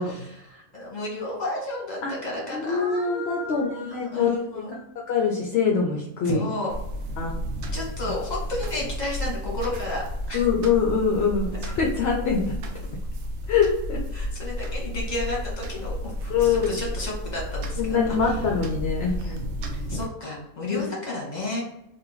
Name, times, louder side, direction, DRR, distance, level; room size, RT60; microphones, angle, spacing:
voice 1, 0.0-4.8 6.2-6.7 7.7-10.4 11.7-11.8 14.1-18.4 19.2-19.4 19.7-21.6, left 2 dB, 35° left, -3 dB, 1.3 m, -32 dB
voice 2, 2.5-4.3 5.1-6.4 7.2-7.3 10.3-12.5 13.5-14.0 16.3-16.8 17.8-19.3 20.7-20.9, left 6 dB, 60° left, -1 dB, 0.7 m, -24 dB
sound 1, 6.7-20.1, equal, 65° right, 0.8 m, -32 dB
3.0 x 2.9 x 3.8 m, 0.84 s
omnidirectional pair, 1.5 m